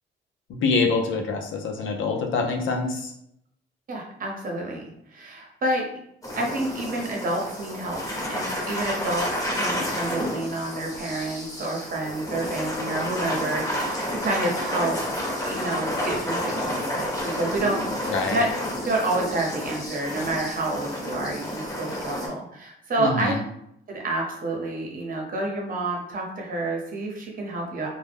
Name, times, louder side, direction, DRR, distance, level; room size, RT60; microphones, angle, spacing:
voice 1, 0.5-3.1 18.1-18.4 23.0-23.4, left 4 dB, 75° left, 2 dB, 0.6 m, -25 dB
voice 2, 3.9-5.8 6.3-8.0 8.3-15.0 15.4-18.5 18.9-23.3 23.9-27.9, right 2 dB, 45° right, 0 dB, 0.9 m, -29 dB
sound 1, 6.2-22.3, left 1 dB, 15° left, 1.0 m, -30 dB
2.2 x 2.1 x 3.4 m, 0.75 s
cardioid pair, 90°, 20 cm